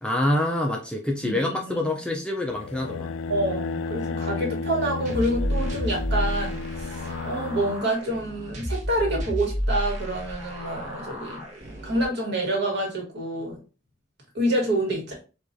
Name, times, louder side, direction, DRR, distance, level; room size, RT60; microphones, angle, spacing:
voice 1, 0.0-3.1, left 1 dB, 5° left, 0 dB, 0.4 m, -26 dB
voice 2, 1.2-2.2 3.3-11.4 11.8-13.6 14.3-15.1, right 1 dB, 55° right, -1 dB, 1.4 m, -27 dB
sound 1, 2.5-7.8, left 4 dB, 85° left, 0.3 m, -32 dB
sound 2, 5.1-12.1, equal, 35° right, 0.9 m, -31 dB
4.7 x 2.3 x 2.6 m, 0.33 s
head